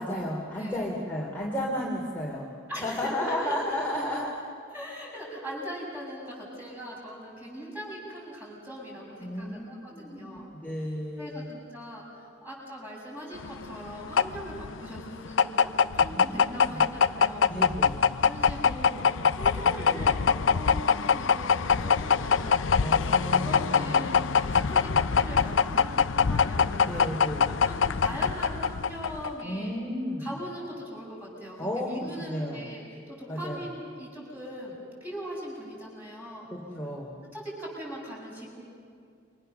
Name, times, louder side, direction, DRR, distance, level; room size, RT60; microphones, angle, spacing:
voice 1, 0.0-2.5 2.8-4.3 9.2-9.6 9.9-11.5 16.0-16.9 17.5-18.0 22.7-24.0 26.8-27.6 29.4-30.3 31.6-31.9 32.2-32.7 33.3-33.6 36.5-37.2, left 1 dB, 10° left, -4 dB, 2.9 m, -33 dB
voice 2, 2.7-3.8 4.7-10.5 11.2-12.0 12.4-17.5 18.2-19.0 19.3-22.6 23.0-23.2 23.4-27.1 27.6-29.8 30.2-36.5 37.3-38.5, equal, 10° right, -4 dB, 7.5 m, -40 dB
sound 1, 13.4-29.4, left 6 dB, 80° left, 0.6 m, -24 dB
28.5 x 25.0 x 6.7 m, 2.3 s
head